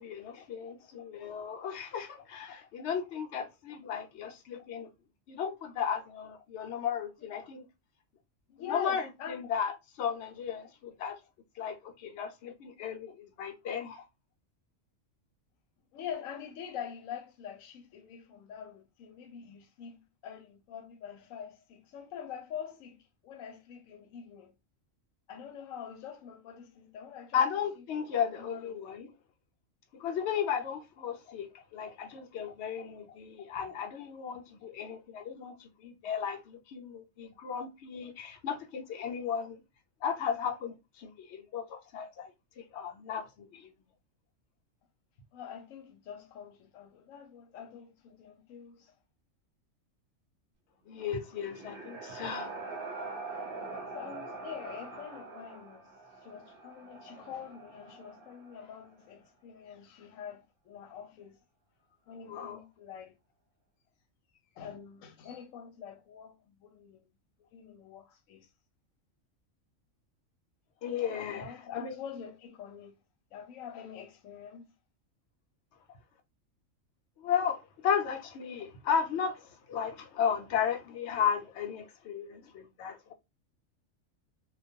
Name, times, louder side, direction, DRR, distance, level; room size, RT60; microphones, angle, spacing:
voice 1, 0.0-4.9 5.3-7.7 8.6-11.2 11.6-14.1 27.3-29.1 30.0-39.6 40.0-42.3 42.6-43.7 50.9-52.6 62.3-62.6 70.8-71.5 71.8-71.9 77.2-83.1, left 7 dB, 65° left, 0.8 m, -35 dB
voice 2, 8.5-9.4 15.9-23.0 23.2-24.5 25.3-27.5 27.8-29.0 45.3-48.9 53.9-55.9 56.2-61.4 62.1-63.1 64.6-67.1 67.5-68.5 71.2-73.0 73.3-74.7, left 8 dB, 90° left, 1.0 m, -45 dB
sound 1, 51.2-58.9, right 3 dB, 50° right, 0.8 m, -44 dB
2.3 x 2.2 x 2.6 m
omnidirectional pair, 1.3 m